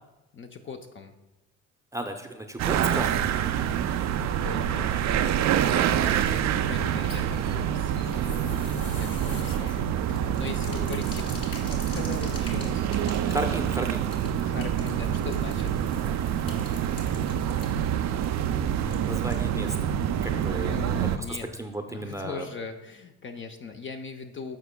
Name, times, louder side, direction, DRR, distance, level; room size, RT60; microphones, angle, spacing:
voice 1, 0.3-1.1 4.2-12.9 14.4-15.8 20.5-21.6 21.9-24.6, left 4 dB, 30° left, 5 dB, 0.6 m, -40 dB
voice 2, 1.9-3.1 10.7-10.8 13.3-14.1 18.7-19.9 20.2-22.5, right 1 dB, 10° right, 4 dB, 0.7 m, -34 dB
sound 1, 2.6-21.2, right 9 dB, 45° right, 0.5 m, -26 dB
sound 2, 7.1-19.8 20.1-20.2 20.5-20.6, left 3 dB, 60° left, 2.1 m, -46 dB
14.5 x 5.0 x 2.2 m, 1.0 s
hypercardioid pair, 55°, 39 cm